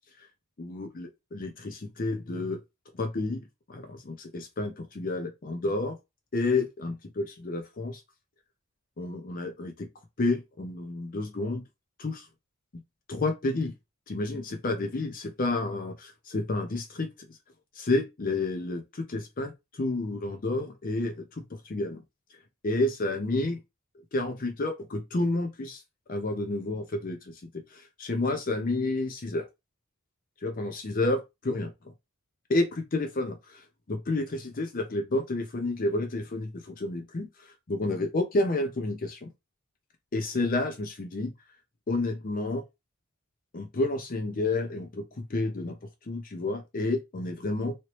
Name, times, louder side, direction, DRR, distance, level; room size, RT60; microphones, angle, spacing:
voice 1, 0.6-2.6 2.9-6.0 6.3-8.0 9.0-9.9 10.2-11.6 12.0-12.3 13.1-13.7 14.1-17.4 17.8-22.0 22.6-23.6 24.1-25.8 26.1-29.5 30.4-31.7 32.5-39.3 40.1-41.3 41.9-42.6 43.5-47.8, left 2 dB, 40° left, 0.5 m, -30 dB
3.2 x 2.9 x 3.0 m
head